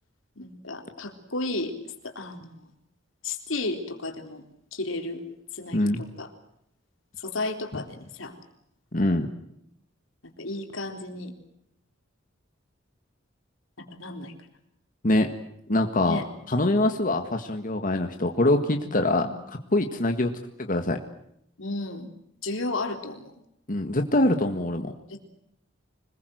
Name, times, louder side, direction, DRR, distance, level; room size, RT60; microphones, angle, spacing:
voice 1, 0.4-1.8 2.0-2.7 3.2-4.4 4.7-5.2 5.5-6.3 7.2-8.4 10.4-11.3 13.8-14.3 16.0-16.3 19.2-19.4 21.6-22.1 22.4-23.3 25.1-25.3, left 2 dB, 85° left, 5 dB, 3.8 m, -33 dB
voice 2, 8.9-9.3 15.0-15.3 15.7-16.2 16.5-20.3 20.6-21.0 23.7-24.9, left 1 dB, 45° left, 5 dB, 1.7 m, -24 dB
26.0 x 21.0 x 7.9 m, 0.76 s
head